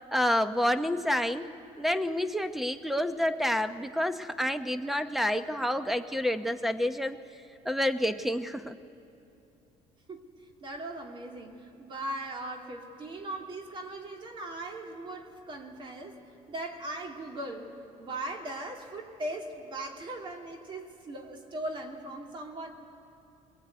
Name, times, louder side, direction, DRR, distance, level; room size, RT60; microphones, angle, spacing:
voice 1, 0.1-1.5 1.8-7.2 7.6-8.7, left 1 dB, ahead, 11 dB, 0.8 m, -28 dB
voice 2, 10.6-16.2 16.5-17.6 18.0-22.7, right 1 dB, 35° right, 3 dB, 2.8 m, -39 dB
21.5 x 21.0 x 9.3 m, 2.9 s
cardioid pair, 125°, 14 cm